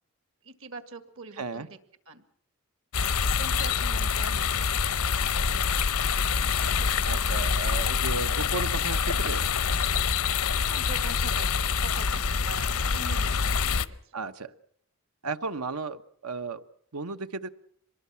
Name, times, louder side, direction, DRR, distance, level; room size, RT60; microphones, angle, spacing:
voice 1, 0.4-1.8 2.1-2.2 3.2-5.6 6.3-7.5 10.6-11.5 11.8-13.8 14.0-14.2, right 3 dB, 65° right, 10 dB, 1.9 m, -44 dB
voice 2, 1.4-1.7 7.0-9.5 14.1-14.5 15.2-16.6 16.9-17.5, right 3 dB, 85° right, 11 dB, 1.2 m, -34 dB
sound 1, 2.9-13.9, left 6 dB, 85° left, 0.8 m, -26 dB
24.5 x 21.0 x 5.8 m, 0.64 s
head